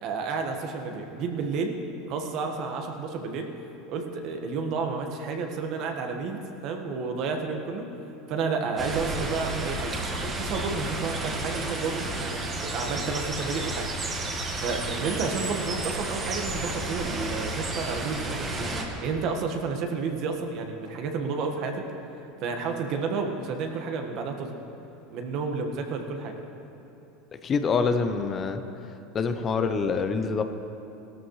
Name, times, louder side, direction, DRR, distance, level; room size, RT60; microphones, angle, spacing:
voice 1, 0.0-1.8 2.1-3.5 3.9-7.9 8.3-9.9 10.2-13.9 14.6-18.7 19.0-21.8 22.4-24.6 25.1-26.4, right 4 dB, 55° right, 4 dB, 1.4 m, -31 dB
sound 1, 8.8-18.8, right 2 dB, 30° right, 1.8 m, -32 dB
voice 2, 27.4-28.6 29.1-30.4, left 5 dB, 35° left, 8 dB, 0.8 m, -25 dB
17.5 x 13.0 x 3.2 m, 2.9 s
hypercardioid pair, 95°, 0 cm